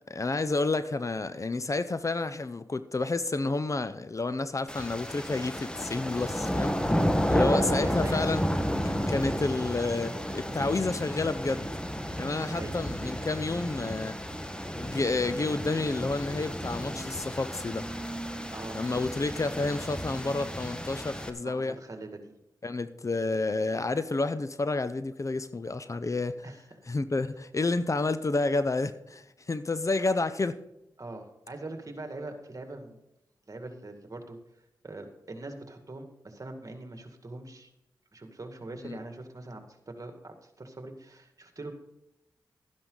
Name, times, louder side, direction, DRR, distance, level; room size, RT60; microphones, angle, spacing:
voice 1, 0.1-6.9 7.3-8.4 8.8-11.7 12.2-14.2 14.8-17.9 18.7-21.8 22.6-26.5 26.9-30.6 38.8-39.0, left 3 dB, 40° left, 13 dB, 0.7 m, -30 dB
sound 1, 4.7-21.3, equal, 10° left, 1.4 m, -32 dB
voice 2, 7.3-8.3 12.1-12.2 12.5-12.8 18.5-18.9 21.4-22.3 26.4-26.9 31.0-33.0 33.5-34.4 34.8-37.7 38.1-41.7, right 2 dB, 45° right, 5 dB, 2.2 m, -42 dB
sound 2, 15.5-21.6, right 2 dB, 15° right, 2.7 m, -45 dB
12.5 x 10.5 x 4.0 m, 0.86 s
cardioid pair, 40°, 8 cm